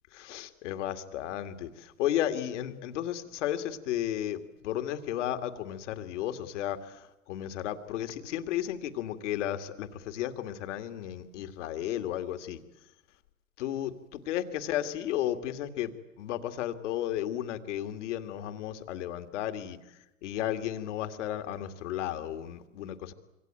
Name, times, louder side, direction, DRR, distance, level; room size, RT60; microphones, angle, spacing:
voice 1, 0.1-12.6 13.6-19.8 20.2-23.1, left 11 dB, 55° left, 8 dB, 2.2 m, -34 dB
26.5 x 24.5 x 9.0 m, 0.92 s
figure-of-eight pair, 105°, 44 cm